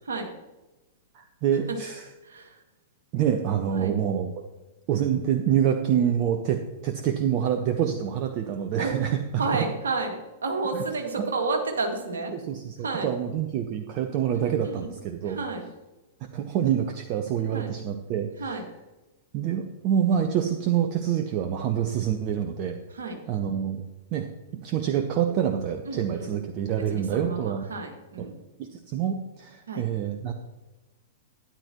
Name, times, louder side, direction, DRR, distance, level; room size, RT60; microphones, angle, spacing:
voice 1, 0.0-0.3 1.7-1.8 2.2-2.6 3.8-3.9 8.8-9.0 9.4-12.3 12.8-13.1 14.3-14.9 15.2-15.7 17.5-17.8 18.4-18.6 22.9-23.2 25.9-26.3 26.7-28.4 29.7-29.9, right 3 dB, 65° right, 2 dB, 2.1 m, -31 dB
voice 2, 1.1-2.1 3.1-4.3 4.9-9.6 10.7-10.8 12.3-15.4 16.3-18.3 19.3-22.8 23.3-23.8 24.1-27.6 28.2-28.3 28.6-30.3, right 9 dB, 40° right, 6 dB, 0.8 m, -26 dB
13.0 x 9.8 x 3.0 m, 1.1 s
figure-of-eight pair, 100°, 0 cm